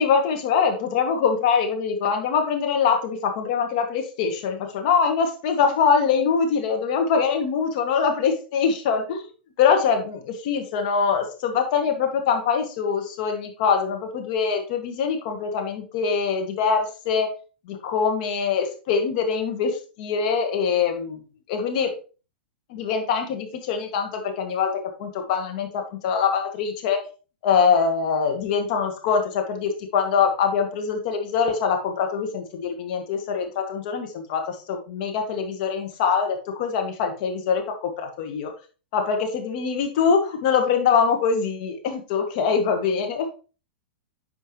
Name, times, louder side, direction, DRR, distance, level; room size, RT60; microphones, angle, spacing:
voice 1, 0.0-9.2 9.6-17.3 17.7-21.2 21.5-21.9 22.7-27.0 27.4-38.5 38.9-43.3, left 6 dB, 50° left, 4 dB, 2.0 m, -23 dB
9.7 x 5.0 x 3.2 m, 0.35 s
figure-of-eight pair, 100°, 6 cm